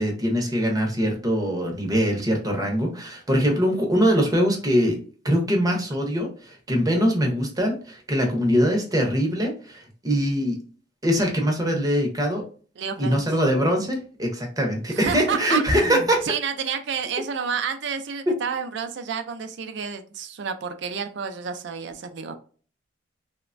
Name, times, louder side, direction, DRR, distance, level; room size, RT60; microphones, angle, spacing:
voice 1, 0.0-5.0 5.2-10.6 11.0-12.4 13.0-16.2, equal, 20° right, 1 dB, 0.6 m, -22 dB
voice 2, 12.8-13.3 14.9-22.4, right 6 dB, 60° right, 8 dB, 0.4 m, -30 dB
3.0 x 2.1 x 2.4 m, 0.40 s
head